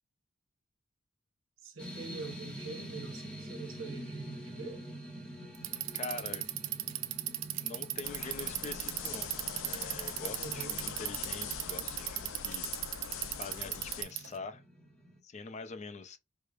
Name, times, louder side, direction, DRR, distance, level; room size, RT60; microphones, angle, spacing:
voice 1, 1.6-4.8 10.4-10.8, right 4 dB, 85° right, 1.0 m, -44 dB
sound 1, 1.8-15.2, right 1 dB, 5° left, 0.7 m, -47 dB
Bicycle, 5.5-14.4, right 15 dB, 70° right, 0.4 m, -36 dB
voice 2, 5.9-6.5 7.6-9.3 9.6-12.7 13.4-14.6 15.2-16.2, left 4 dB, 35° left, 0.4 m, -44 dB
sound 2, 8.0-14.0, left 7 dB, 90° left, 0.5 m, -43 dB
4.7 x 2.1 x 2.3 m
head